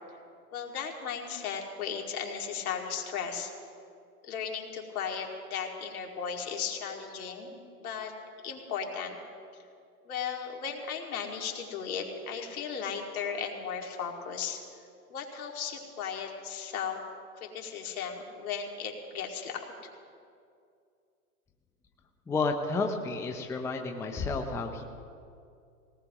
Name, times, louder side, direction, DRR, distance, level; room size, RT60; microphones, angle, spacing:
voice 1, 0.5-3.5 4.2-8.1 8.4-9.2 10.1-14.6 15.1-17.0 17.3-19.7, left 7 dB, 70° left, 2 dB, 2.4 m, -36 dB
voice 2, 22.3-24.8, left 3 dB, 5° left, 3 dB, 0.6 m, -31 dB
21.5 x 18.5 x 3.0 m, 2.4 s
hypercardioid pair, 125°, 45 cm